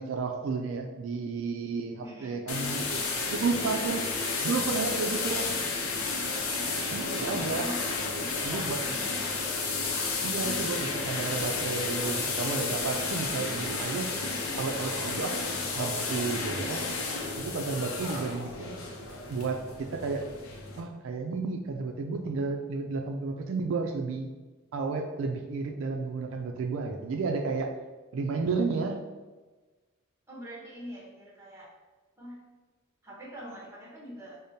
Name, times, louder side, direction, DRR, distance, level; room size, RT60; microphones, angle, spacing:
voice 1, 0.0-3.0 3.3-4.0 4.4-5.5 6.9-7.7 8.4-9.0 10.2-14.1 14.6-15.3 15.8-16.8 17.4-18.9 19.3-20.3 20.8-24.3 24.7-27.7 28.1-29.0, right 4 dB, 65° right, 3 dB, 0.3 m, -32 dB
voice 2, 2.0-2.5 6.4-6.7 7.2-9.6 18.0-18.3 30.3-31.7 32.2-32.4 33.0-34.4, equal, 10° right, -4 dB, 0.8 m, -44 dB
sound 1, 2.5-20.8, left 3 dB, 85° left, 0.6 m, -32 dB
5.0 x 2.1 x 2.7 m, 1.3 s
head